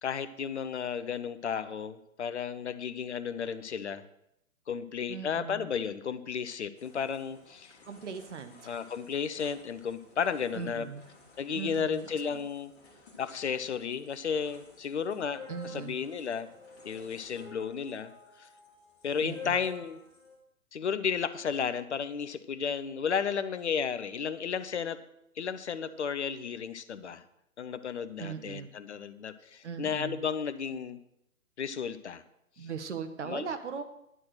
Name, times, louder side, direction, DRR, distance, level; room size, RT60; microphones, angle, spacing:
voice 1, 0.0-4.0 4.7-7.8 8.7-10.9 11.4-12.7 13.2-16.5 16.8-18.1 18.4-18.5 19.0-20.0 20.7-25.0 25.4-27.2 27.6-31.0 31.6-32.2 32.6-32.7 33.2-33.5, left 6 dB, 50° left, 14 dB, 0.7 m, -33 dB
voice 2, 5.1-5.7 7.8-8.7 10.5-11.0 11.5-12.4 15.5-15.9 19.2-19.6 28.2-28.7 29.6-30.2 32.6-33.8, right 6 dB, 55° right, 9 dB, 1.3 m, -39 dB
sound 1, 6.8-20.4, left 2 dB, 25° left, 2.6 m, -52 dB
11.0 x 6.0 x 6.5 m, 0.81 s
figure-of-eight pair, 130°, 43 cm